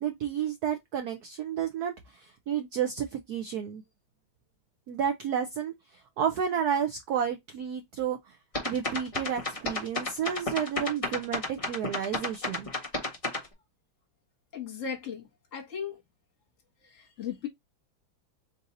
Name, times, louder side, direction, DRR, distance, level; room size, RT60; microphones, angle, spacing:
voice 1, 0.0-3.8 4.9-8.4 8.6-12.7, right 8 dB, 70° right, 0.9 m, -31 dB
sound 1, 8.5-13.5, left 2 dB, 25° left, 0.8 m, -32 dB
voice 2, 14.5-15.3 15.5-16.0 16.9-17.5, left 7 dB, 40° left, 1.6 m, -36 dB
3.9 x 2.6 x 3.9 m
omnidirectional pair, 2.2 m